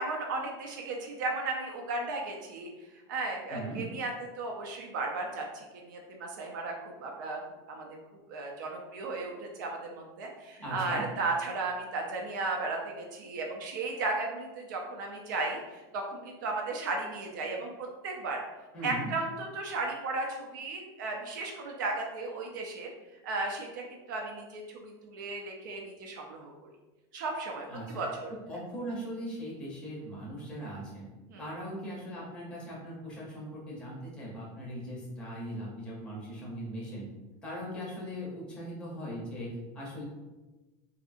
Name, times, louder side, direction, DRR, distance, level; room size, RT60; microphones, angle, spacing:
voice 1, 0.0-2.7 3.1-4.1 4.4-6.7 7.0-7.4 7.7-7.9 8.3-18.4 18.8-22.9 23.2-26.5 27.1-28.3 31.3-31.4, right 3 dB, 85° right, 1 dB, 0.4 m, -35 dB
voice 2, 3.5-3.9 10.6-11.0 18.7-19.1 27.7-28.0 28.5-31.1 31.4-37.1 37.4-40.1, equal, 10° left, -5 dB, 0.6 m, -39 dB
2.7 x 2.4 x 2.4 m, 1.1 s
supercardioid pair, 175°, 10 cm